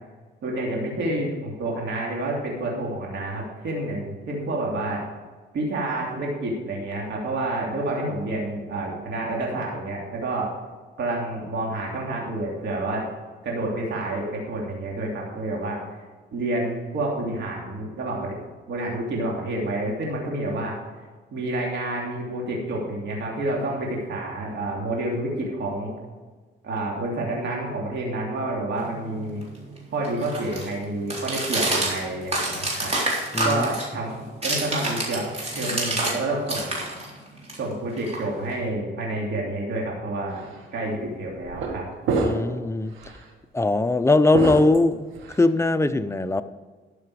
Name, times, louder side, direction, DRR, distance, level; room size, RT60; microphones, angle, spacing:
voice 1, 0.4-5.0 5.5-10.5 11.0-13.1 13.4-15.8 16.3-18.4 18.7-20.8 21.3-25.9 26.6-29.4 29.9-32.9 33.4-36.8 37.6-40.4 40.7-41.9, right 2 dB, 65° right, -2 dB, 2.9 m, -29 dB
sound 1, 28.8-36.2 36.4-38.7, right 2 dB, 30° right, 3.6 m, -29 dB
voice 2, 33.3-33.7 42.2-42.9 43.5-46.4, left 2 dB, 15° left, 11 dB, 0.6 m, -21 dB
sound 2, 40.3-40.5 41.4-41.8 42.0-42.6 43.0-43.2 44.3-45.4, right 3 dB, 90° right, 1.8 m, -26 dB
12.5 x 6.8 x 4.8 m, 1.4 s
cardioid pair, 90°, 20 cm